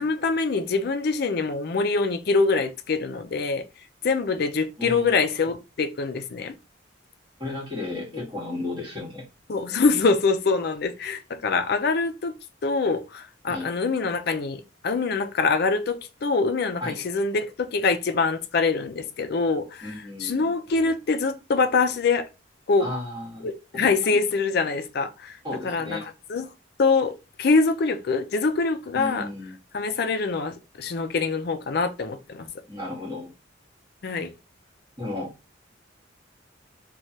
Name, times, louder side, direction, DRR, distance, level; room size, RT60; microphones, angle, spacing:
voice 1, 0.0-3.7 4.0-6.5 8.1-8.2 9.5-12.3 12.6-19.9 20.2-22.3 22.7-22.9 23.4-25.4 25.6-26.5 26.8-29.3 29.7-32.5 34.0-34.3, left 4 dB, 55° left, 0.4 m, -24 dB
voice 2, 4.8-5.1 7.4-9.2 13.5-13.7 16.8-17.0 19.8-20.4 22.8-23.5 23.7-24.2 25.4-26.0 28.9-29.5 32.7-33.3 35.0-35.3, left 2 dB, 25° right, 1.5 m, -34 dB
3.1 x 2.3 x 2.6 m
head